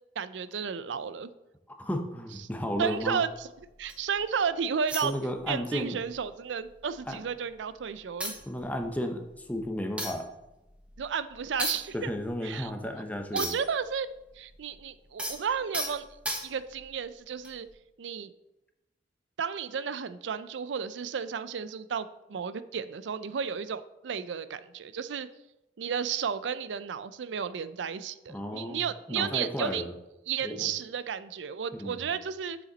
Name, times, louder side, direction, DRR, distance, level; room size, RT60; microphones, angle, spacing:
voice 1, 0.2-1.3 2.8-3.5 3.8-5.1 5.5-8.4 11.0-12.1 12.4-12.7 13.3-14.1 14.4-16.0 16.4-17.7 18.0-18.3 19.4-25.3 25.8-29.9 30.3-32.6, right 7 dB, 90° right, 14 dB, 0.4 m, -33 dB
voice 2, 1.8-3.2 5.0-6.0 7.1-7.2 8.5-10.3 11.9-13.5 28.3-28.8 29.1-29.9 30.4-30.7 31.7-32.1, equal, 10° left, 4 dB, 0.7 m, -33 dB
sound 1, 2.3-4.2 4.9-5.7 6.0-6.2 6.6-7.5 7.8-7.9 8.2-13.8 14.1-16.8 17.4-17.7, right 1 dB, 5° right, 1.1 m, -38 dB
7.1 x 7.0 x 4.0 m, 0.95 s
head